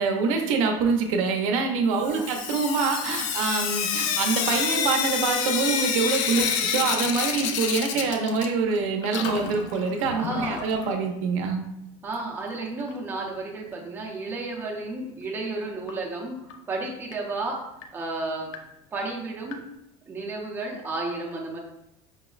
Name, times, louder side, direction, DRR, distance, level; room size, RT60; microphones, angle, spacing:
voice 1, 0.0-11.6, right 4 dB, 80° right, 3 dB, 0.6 m, -25 dB
Sink (filling or washing) / Drip, 2.0-8.8 9.0-11.0 12.1-12.2 12.5-12.6 12.9-13.0 15.9-16.0 16.5-16.6 17.1-17.2 17.8-17.9 18.5-18.6 19.5-19.6, left 7 dB, 75° left, 0.5 m, -28 dB
voice 2, 2.0-2.4 6.3-6.6 7.9-8.0 10.2-10.6 12.0-16.4 16.7-17.6 17.9-18.5 18.9-19.6 20.1-21.6, right 3 dB, 10° right, -2 dB, 0.5 m, -32 dB
5.3 x 2.0 x 2.4 m, 0.83 s
supercardioid pair, 155°, 16 cm